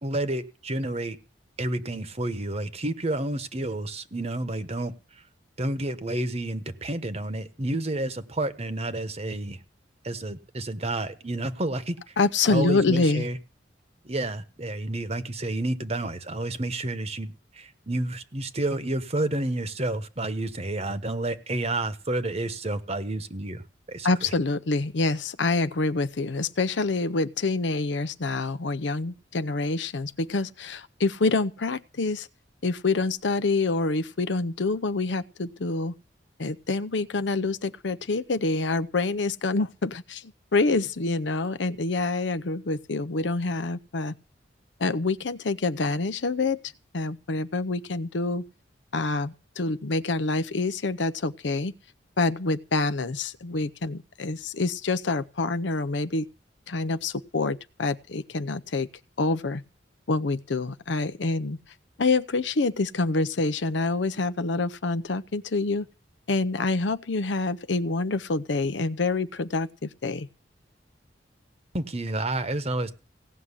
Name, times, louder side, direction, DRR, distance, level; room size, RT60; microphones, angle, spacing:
voice 1, 0.0-1.2 1.6-4.9 5.6-9.6 10.0-12.1 12.5-13.4 14.0-24.1 71.7-72.9, right 2 dB, 35° right, 1.1 m, -30 dB
voice 2, 12.2-13.3 24.0-32.3 32.6-35.9 36.4-44.1 44.8-46.6 46.9-48.4 48.9-51.7 52.2-56.3 56.7-58.9 59.2-59.6 60.1-61.6 62.0-65.9 66.3-70.3, left 3 dB, 80° left, 0.7 m, -26 dB
17.0 x 6.3 x 9.8 m
head